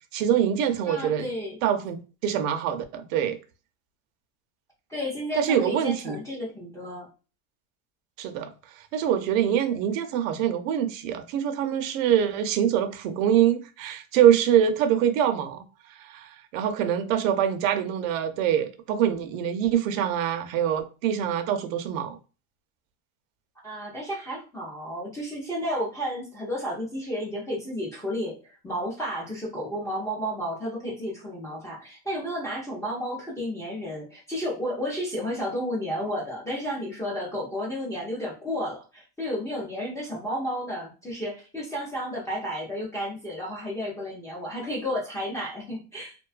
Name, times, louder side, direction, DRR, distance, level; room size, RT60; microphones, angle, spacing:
voice 1, 0.1-1.3 1.6-3.4 5.4-6.2 8.2-22.2, right 9 dB, 75° right, 0.6 m, -24 dB
voice 2, 0.9-1.6 4.9-7.1 23.6-46.2, equal, 10° left, 0.4 m, -32 dB
2.6 x 2.3 x 2.4 m
supercardioid pair, 155°, 41 cm